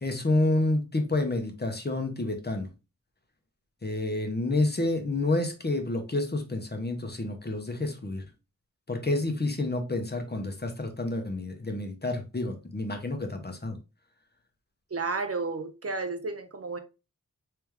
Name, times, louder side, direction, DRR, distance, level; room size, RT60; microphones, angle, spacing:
voice 1, 0.0-2.7 3.8-8.2 8.9-13.8, left 2 dB, 30° left, 0.9 m, -29 dB
voice 2, 14.9-16.8, right 3 dB, 45° right, 0.8 m, -32 dB
3.3 x 3.3 x 3.2 m
wide cardioid pair, 60°, 34 cm